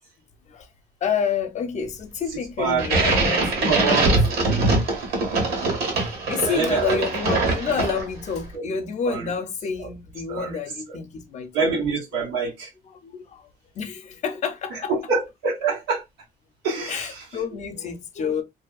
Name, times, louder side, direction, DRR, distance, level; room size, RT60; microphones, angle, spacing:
voice 1, 1.0-4.0 4.7-4.8 5.4-5.5 6.0-11.8 12.8-13.5 13.7-14.9 16.7-18.4, left 6 dB, 45° left, 0.6 m, -29 dB
sound 1, 2.8-8.3, right 2 dB, 65° right, 1.3 m, -22 dB
voice 2, 3.6-4.2 6.4-7.0 8.5-8.6 9.0-9.2 10.3-10.6 11.5-12.7 14.9-16.0 16.6-17.1, right 5 dB, 90° right, 1.3 m, -25 dB
2.6 x 2.3 x 2.3 m
cardioid pair, 110°, 17 cm